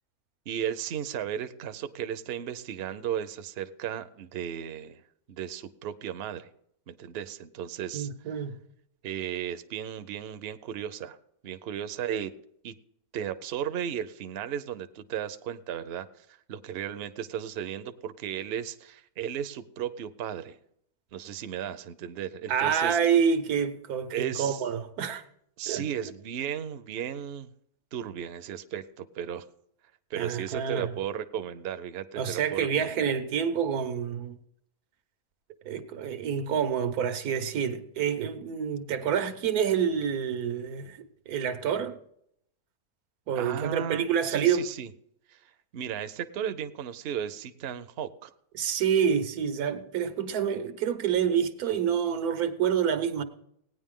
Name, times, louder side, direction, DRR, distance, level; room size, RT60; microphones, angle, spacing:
voice 1, 0.5-5.0 5.3-6.5 6.9-8.1 9.0-11.2 11.4-12.3 12.6-12.7 13.1-20.6 21.1-23.0 24.1-24.6 25.6-27.5 27.9-29.4 30.1-33.1 43.3-44.9 45.3-45.4 45.7-48.3, right 9 dB, 55° right, 0.7 m, -35 dB
voice 2, 7.9-8.6 22.5-25.2 25.7-25.9 30.2-30.9 32.2-34.3 35.6-41.0 41.3-42.0 43.3-44.7 48.5-53.2, right 7 dB, 90° right, 1.4 m, -27 dB
17.5 x 9.6 x 3.7 m
omnidirectional pair, 1.6 m